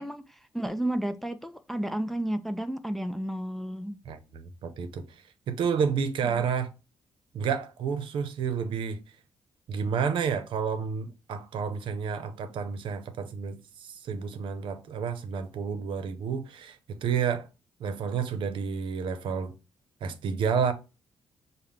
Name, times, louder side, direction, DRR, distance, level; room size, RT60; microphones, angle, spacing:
voice 1, 0.0-4.0 6.2-6.4, right 1 dB, ahead, 0.3 m, -32 dB
voice 2, 4.1-6.7 7.3-9.0 9.7-17.5 17.8-19.5 20.0-20.7, right 6 dB, 75° right, 0.7 m, -30 dB
5.5 x 2.2 x 3.3 m
cardioid pair, 125°, 9 cm